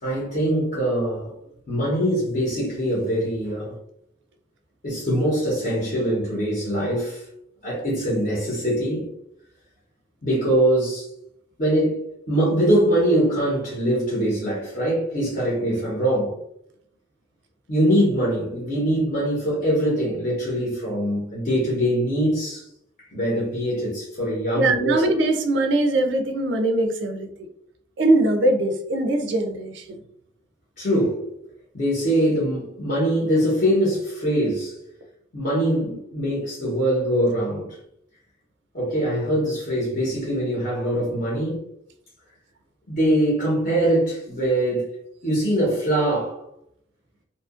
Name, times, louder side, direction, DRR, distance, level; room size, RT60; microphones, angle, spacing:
voice 1, 0.0-1.3 1.7-3.7 4.8-7.3 7.6-9.1 10.2-11.1 11.6-12.0 12.3-16.4 17.7-22.7 23.0-25.0 30.8-31.3 31.7-34.8 35.3-37.8 38.7-41.6 42.9-44.9 45.2-46.4, right 1 dB, 45° left, 0.9 m, -23 dB
voice 2, 24.5-27.3 28.0-30.0, right 2 dB, 65° right, 0.4 m, -21 dB
2.7 x 2.4 x 2.4 m
head